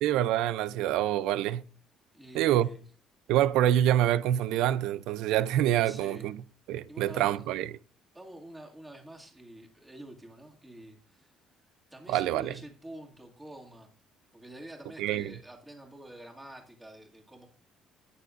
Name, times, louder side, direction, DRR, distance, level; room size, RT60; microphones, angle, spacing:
voice 1, 0.0-1.6 2.3-2.7 3.3-6.4 6.7-7.7 12.1-12.5 15.0-15.3, right 12 dB, 85° right, 0.5 m, -26 dB
voice 2, 2.1-2.8 5.8-6.3 6.9-7.4 8.1-11.4 11.9-13.9 14.3-17.5, right 1 dB, 10° right, 2.2 m, -48 dB
19.0 x 6.7 x 2.6 m
cardioid pair, 125°, 0 cm